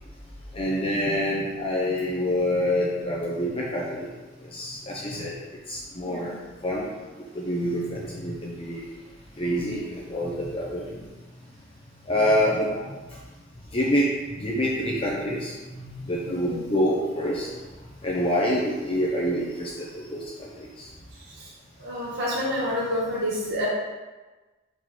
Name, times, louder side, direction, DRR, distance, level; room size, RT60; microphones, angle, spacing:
voice 1, 0.5-4.1 4.5-5.3 5.7-6.3 6.6-6.9 7.3-8.8 9.4-11.0 12.1-12.7 13.7-14.1 14.4-17.5 18.0-20.5 20.8-20.9, equal, 30° left, -4 dB, 0.9 m, -26 dB
voice 2, 16.3-16.6 21.4-21.5 21.8-23.7, left 1 dB, 55° right, -7 dB, 1.4 m, -28 dB
6.2 x 4.6 x 4.2 m, 1.2 s
head